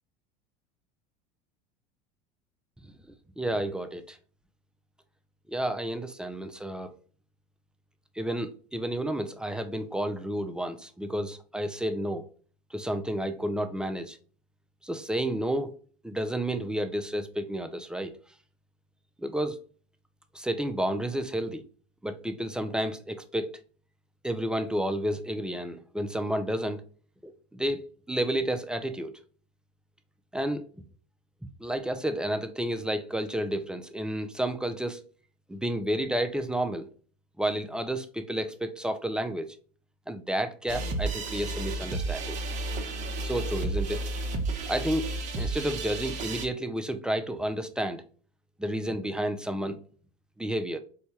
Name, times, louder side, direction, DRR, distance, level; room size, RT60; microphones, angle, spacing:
voice 1, 2.8-4.2 5.5-6.9 8.2-12.2 12.7-14.2 14.8-15.8 16.0-18.1 19.2-19.6 20.3-21.6 22.0-23.6 24.2-26.8 27.2-29.1 30.3-30.7 31.6-35.0 35.5-36.9 37.4-39.6 40.1-42.5 43.2-44.1 44.7-45.1 45.4-48.0 48.6-49.8 50.4-50.8, right 1 dB, 5° right, 0.4 m, -31 dB
sound 1, 40.7-46.5, right 2 dB, 40° right, 0.8 m, -32 dB
4.4 x 2.2 x 2.8 m
supercardioid pair, 110°, 19 cm